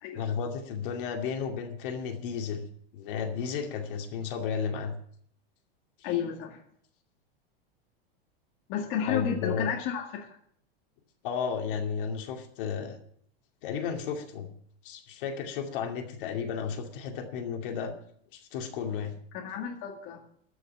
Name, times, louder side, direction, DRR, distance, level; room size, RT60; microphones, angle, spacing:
voice 1, 0.1-2.7 2.9-5.0 6.0-6.2 9.1-9.7 11.2-13.0 13.6-14.5 14.8-17.9 18.3-19.1, left 6 dB, 60° left, 3 dB, 2.5 m, -33 dB
voice 2, 6.0-6.6 8.7-10.3 19.3-20.2, left 8 dB, 40° left, 0 dB, 2.1 m, -31 dB
13.5 x 6.4 x 9.4 m, 0.65 s
supercardioid pair, 145°, 30 cm